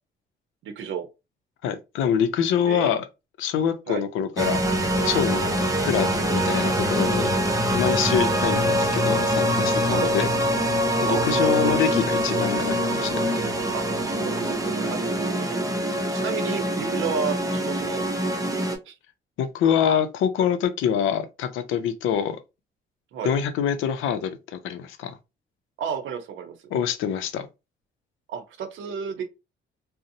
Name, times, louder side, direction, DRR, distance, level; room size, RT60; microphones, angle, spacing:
voice 1, 0.6-1.1 2.6-3.0 3.9-4.0 9.9-10.1 11.1-11.7 13.7-15.6 16.1-18.0 18.9-19.0 23.1-23.3 25.8-26.5 28.3-29.2, right 7 dB, 75° right, 0.6 m, -31 dB
voice 2, 1.6-3.0 3.4-4.6 5.0-7.3 7.7-10.3 11.0-13.5 19.4-22.4 23.2-25.2 26.7-27.5, left 8 dB, 85° left, 0.5 m, -25 dB
sound 1, 4.4-18.8, equal, 15° right, 0.6 m, -24 dB
2.6 x 2.0 x 2.6 m
cardioid pair, 90°, 20 cm